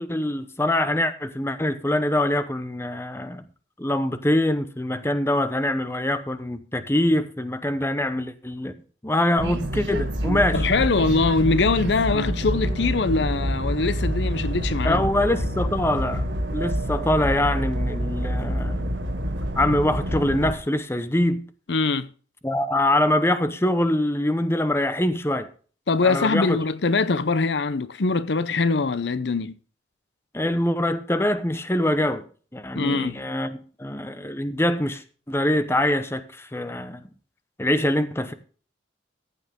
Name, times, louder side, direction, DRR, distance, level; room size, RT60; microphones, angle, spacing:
voice 1, 0.0-3.4 3.8-8.7 9.0-10.6 14.8-16.2 16.5-18.9 19.6-21.4 22.4-25.5 26.0-26.6 30.3-32.2 32.5-37.1 37.6-38.3, left 1 dB, 15° left, 0.9 m, -24 dB
sound 1, 9.4-20.6, right 1 dB, 80° right, 1.6 m, -27 dB
voice 2, 10.5-15.0 21.7-22.1 25.9-29.6 32.7-33.2, left 3 dB, 70° left, 0.7 m, -23 dB
14.5 x 8.5 x 3.6 m
head